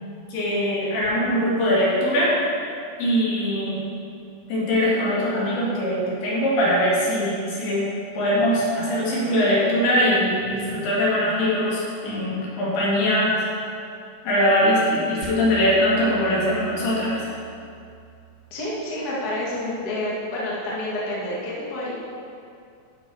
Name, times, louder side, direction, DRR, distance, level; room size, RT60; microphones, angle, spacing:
voice 1, 0.3-2.4 3.0-3.9 4.5-7.9 8.1-13.5 14.3-17.3, equal, 65° left, -6 dB, 3.8 m, -22 dB
sound 1, 15.2-19.5, right 7 dB, 85° right, 3.0 m, -44 dB
voice 2, 18.5-21.9, left 1 dB, 45° left, -7 dB, 1.2 m, -29 dB
13.0 x 5.5 x 4.8 m, 2.4 s
omnidirectional pair, 5.0 m